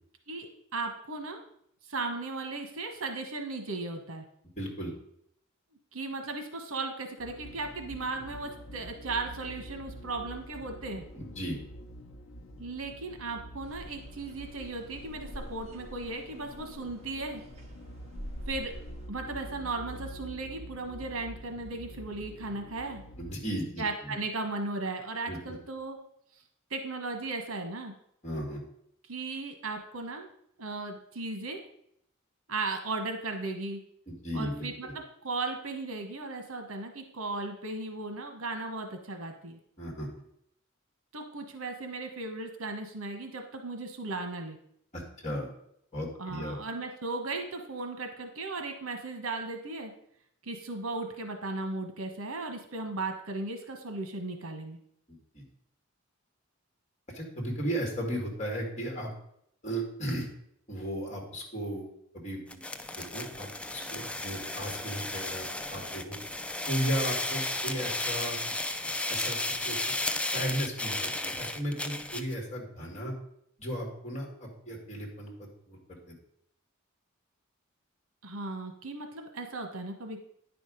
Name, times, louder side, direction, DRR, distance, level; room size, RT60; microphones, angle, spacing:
voice 1, 0.3-1.4 1.9-4.2 5.9-11.0 12.6-17.4 18.5-18.7 19.1-23.0 23.8-26.0 26.7-27.9 29.1-30.3 30.6-31.6 32.5-33.8 34.3-34.9 35.2-39.6 41.1-44.6 46.2-49.9 50.4-54.8 78.2-80.2, right 3 dB, 85° right, 5 dB, 1.2 m, -36 dB
voice 2, 4.4-4.9 11.1-11.6 23.2-24.1 25.3-25.6 28.2-28.6 34.1-34.9 39.8-40.1 44.9-45.5 45.9-46.6 55.1-55.4 57.1-59.1 59.6-60.3 60.7-61.9 62.1-62.6 63.0-66.2 66.7-68.4 69.1-69.8 70.2-73.1 73.6-76.2, equal, 35° left, 0 dB, 2.2 m, -35 dB
sound 1, 7.2-23.3, equal, 75° left, 0.7 m, -46 dB
sound 2, 13.6-19.1, equal, 30° right, 1.1 m, -46 dB
sound 3, 62.5-72.3, left 2 dB, 5° left, 0.4 m, -34 dB
9.7 x 5.1 x 5.1 m, 0.71 s
head